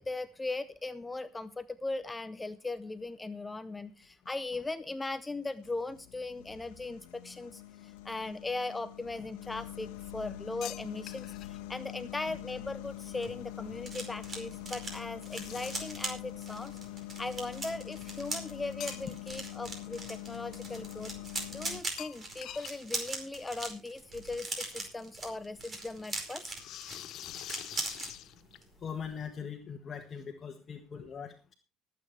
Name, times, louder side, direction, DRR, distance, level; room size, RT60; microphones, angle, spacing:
voice 1, 0.0-16.7 17.2-21.1 21.5-26.5, left 2 dB, 15° left, 13 dB, 0.6 m, -39 dB
sound 1, 4.0-4.7 5.2-21.8, left 15 dB, 85° left, 1.3 m, -44 dB
sound 2, 10.6-11.6 15.3-16.1 18.8-19.4 19.8-19.9 22.0-22.8 23.0-23.1 23.4-23.5 24.7-24.8 26.5-28.8, left 13 dB, 60° left, 0.9 m, -45 dB
sound 3, 12.9-28.1 28.4-28.7 29.0-29.2, right 3 dB, 30° right, 4.8 m, -41 dB
voice 2, 28.8-31.5, left 7 dB, 35° left, 4 dB, 1.6 m, -41 dB
24.5 x 8.5 x 3.2 m, 0.31 s
supercardioid pair, 100°, 0 cm